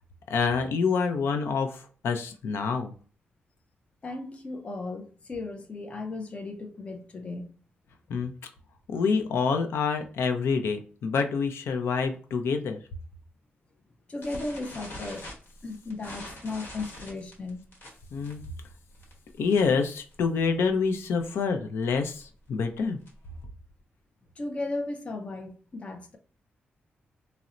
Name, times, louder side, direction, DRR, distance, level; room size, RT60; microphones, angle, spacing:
voice 1, 0.3-2.9 8.1-8.3 8.9-12.8 18.1-18.4 19.4-23.0, left 5 dB, 85° left, 0.5 m, -27 dB
voice 2, 4.0-7.5 14.1-15.3 15.6-17.6 24.4-26.2, left 2 dB, 30° left, 0.4 m, -36 dB
sound 1, 14.2-19.8 20.1-20.4 20.7-20.8 21.1-21.3 21.8-23.4, left 1 dB, 65° left, 1.1 m, -44 dB
4.1 x 2.0 x 2.4 m
wide cardioid pair, 165°, 4 cm